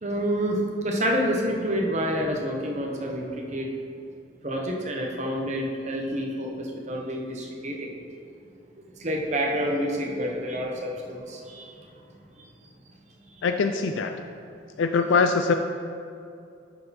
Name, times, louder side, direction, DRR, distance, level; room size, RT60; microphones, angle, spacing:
voice 1, 0.0-3.7 4.4-7.9 9.0-11.7 13.3-13.4, equal, 35° right, 0 dB, 1.0 m, -28 dB
voice 2, 13.4-14.1 14.8-15.5, left 4 dB, 75° left, 6 dB, 0.4 m, -22 dB
11.0 x 4.5 x 4.2 m, 2.5 s
head